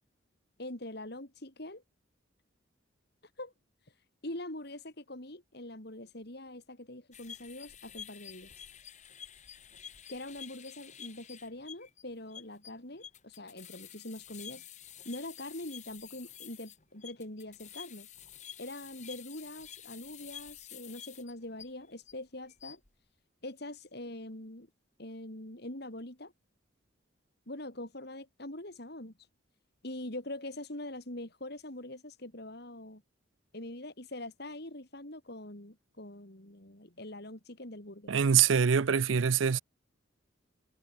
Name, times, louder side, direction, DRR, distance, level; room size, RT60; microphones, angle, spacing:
voice 1, 0.6-1.8 3.2-3.5 3.8-8.6 10.1-18.1 18.6-22.8 23.4-24.7 25.0-26.3 27.5-29.3 29.8-33.0 33.5-38.1, left 1 dB, 55° left, 3.7 m, -43 dB
sound 1, 7.1-22.1 22.5-22.9, left 9 dB, 35° left, 2.3 m, -49 dB
voice 2, 38.1-39.6, right 7 dB, 75° right, 0.5 m, -24 dB
head